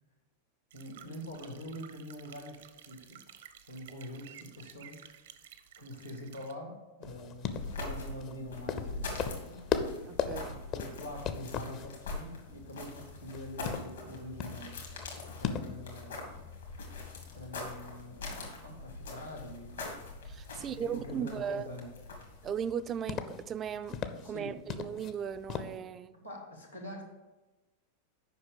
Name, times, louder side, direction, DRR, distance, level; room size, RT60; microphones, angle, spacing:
voice 1, 0.7-3.4 3.7-5.0 5.8-9.7 10.5-14.8 15.4-16.5 17.3-19.8 20.5-21.9 24.2-24.6 26.1-27.0, left 1 dB, 90° left, 1.8 m, -45 dB
sound 1, 0.7-6.5, right 9 dB, 60° right, 0.6 m, -54 dB
sound 2, 7.0-25.8, left 7 dB, 35° left, 0.6 m, -41 dB
sound 3, 7.5-22.5, left 2 dB, 70° left, 2.0 m, -43 dB
voice 2, 10.0-10.5 20.3-21.7 22.4-26.1, right 8 dB, 25° right, 0.3 m, -37 dB
7.9 x 5.5 x 4.9 m
figure-of-eight pair, 90°, 0 cm